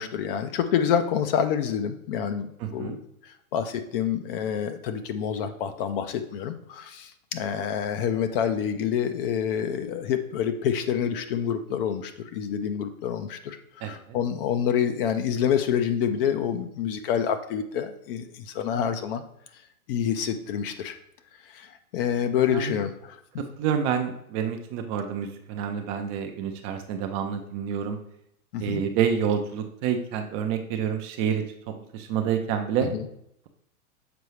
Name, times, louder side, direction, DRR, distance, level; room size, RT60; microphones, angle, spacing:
voice 1, 0.0-2.5 2.7-3.0 3.5-19.2 19.9-20.9 21.5-23.2 28.5-28.8 32.9-33.0, left 8 dB, 40° left, 8 dB, 0.6 m, -27 dB
voice 2, 2.6-3.0 13.8-13.9 22.5-22.7 23.6-28.0 28.6-31.4 31.9-32.9, right 8 dB, 30° right, 5 dB, 0.5 m, -28 dB
6.9 x 4.6 x 3.1 m, 0.74 s
hypercardioid pair, 110°, 43 cm